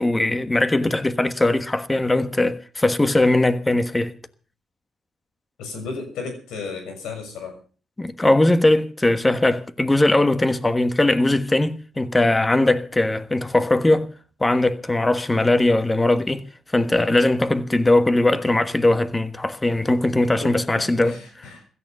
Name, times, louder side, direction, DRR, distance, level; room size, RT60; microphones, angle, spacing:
voice 1, 0.0-4.1 8.0-14.1 14.4-16.5 16.7-21.5, left 2 dB, 15° left, 1.3 m, -20 dB
voice 2, 5.6-7.6 20.4-21.7, left 4 dB, 85° left, 6.4 m, -34 dB
16.0 x 14.0 x 5.5 m
cardioid pair, 90°, 0 cm